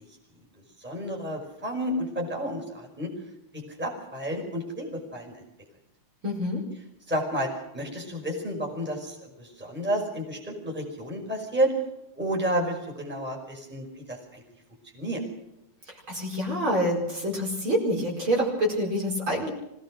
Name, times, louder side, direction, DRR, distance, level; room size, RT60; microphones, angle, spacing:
voice 1, 0.8-3.1 3.8-5.4 7.1-11.7 12.2-14.4 14.9-15.2, equal, 5° right, 0 dB, 5.1 m, -31 dB
voice 2, 6.2-6.6 15.9-19.5, equal, 40° right, -1 dB, 5.6 m, -27 dB
25.5 x 17.5 x 6.4 m, 0.87 s
omnidirectional pair, 3.6 m